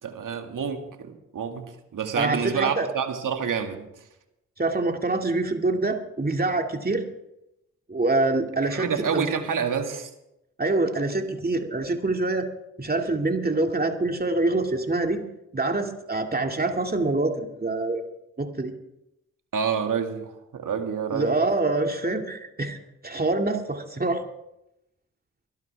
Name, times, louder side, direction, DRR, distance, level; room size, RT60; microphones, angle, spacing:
voice 1, 0.0-3.9 8.6-10.1 19.5-21.3, right 6 dB, 65° right, 5 dB, 2.2 m, -28 dB
voice 2, 2.1-2.9 4.6-7.0 7.9-8.9 9.1-9.2 10.6-12.5 12.8-15.2 15.5-18.0 18.4-18.7 21.1-22.8 23.0-24.2, right 2 dB, 25° right, 4 dB, 2.5 m, -25 dB
22.5 x 12.0 x 3.6 m, 0.86 s
supercardioid pair, 40°, 35 cm